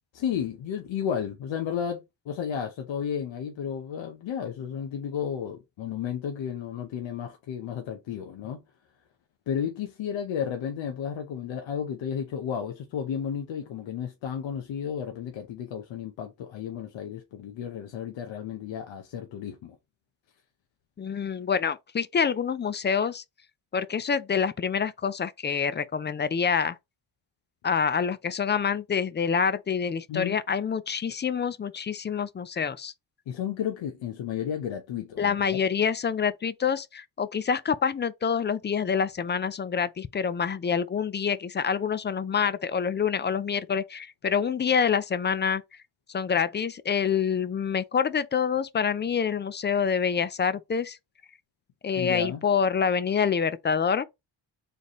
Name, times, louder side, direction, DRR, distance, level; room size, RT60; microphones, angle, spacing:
voice 1, 0.1-8.6 9.5-19.8 30.1-30.4 33.3-35.6 51.9-52.5, left 8 dB, 80° left, 0.9 m, -33 dB
voice 2, 21.0-23.2 23.7-26.8 27.6-32.9 35.2-45.6 46.1-51.0 51.8-54.0, left 6 dB, 25° left, 0.4 m, -26 dB
4.1 x 3.4 x 3.0 m
cardioid pair, 115°, 45 cm